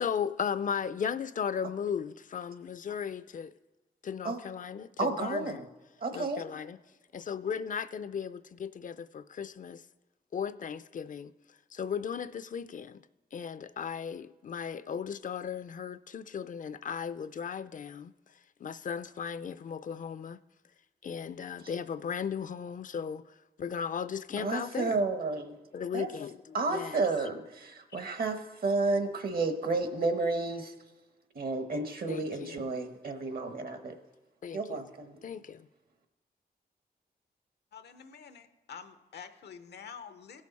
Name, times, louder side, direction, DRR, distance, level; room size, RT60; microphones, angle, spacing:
voice 1, 0.0-3.5 4.0-5.7 6.1-6.8 7.1-9.8 10.3-11.3 11.7-13.0 13.3-18.1 18.6-20.4 21.0-23.2 23.6-25.0 25.7-27.0 32.1-32.6 34.4-34.8 35.2-35.7, left 7 dB, 50° left, 0.4 m, -36 dB
voice 2, 5.0-5.7 6.0-6.4 24.4-25.6 25.9-26.1 26.5-30.7 31.3-33.9 34.5-35.2, right 3 dB, 65° right, 1.1 m, -31 dB
voice 3, 37.7-40.4, left 7 dB, 90° left, 0.7 m, -47 dB
16.5 x 6.4 x 4.1 m
cardioid pair, 75°, 17 cm